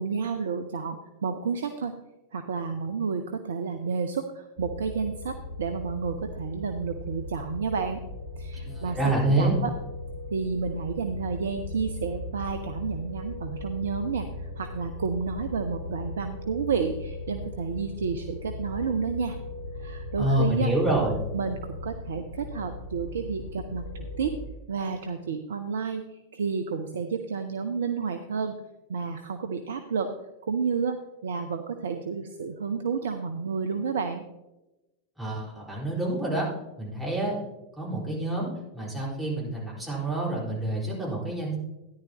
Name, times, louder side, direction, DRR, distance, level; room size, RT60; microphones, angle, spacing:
voice 1, 0.0-1.9 2.3-8.0 8.4-9.7 10.3-19.4 19.8-20.7 21.3-24.4 24.7-28.6 28.9-34.2, right 5 dB, 65° right, 7 dB, 0.6 m, -31 dB
sound 1, 4.6-24.5, left 2 dB, 60° left, 1.3 m, -38 dB
voice 2, 8.6-9.6 20.2-21.2 35.2-36.5 36.8-37.4 37.8-41.6, right 1 dB, 5° right, -6 dB, 4.3 m, -27 dB
13.5 x 10.5 x 2.9 m, 1.0 s
figure-of-eight pair, 90°, 0 cm